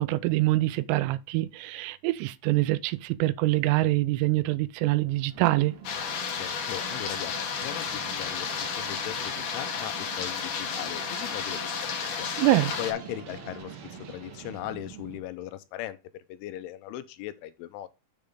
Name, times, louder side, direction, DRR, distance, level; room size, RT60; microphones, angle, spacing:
voice 1, 0.0-5.7 12.4-12.7, right 18 dB, 90° right, 3.2 m, -25 dB
sound 1, 5.0-13.6, left 1 dB, 40° right, 1.8 m, -50 dB
sound 2, 5.3-15.2, right 8 dB, 60° right, 3.5 m, -46 dB
sound 3, 5.8-12.9, left 6 dB, 60° left, 2.3 m, -32 dB
voice 2, 6.3-12.3 12.8-17.9, left 13 dB, 80° left, 3.0 m, -39 dB
7.7 x 6.8 x 3.5 m
omnidirectional pair, 5.8 m